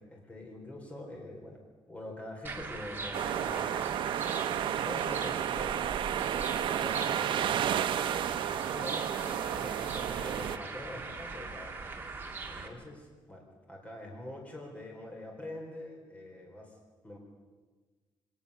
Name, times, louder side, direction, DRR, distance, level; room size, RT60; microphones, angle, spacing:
voice 1, 0.0-1.6 1.9-4.1 4.8-12.2 12.5-16.8 17.0-17.2, left 1 dB, 15° left, 0 dB, 3.9 m, -45 dB
sound 1, 2.4-12.7, right 3 dB, 25° right, 2.3 m, -41 dB
sound 2, 3.1-10.6, right 10 dB, 70° right, 0.7 m, -32 dB
24.5 x 18.5 x 6.8 m, 1.3 s
wide cardioid pair, 175°, 9 cm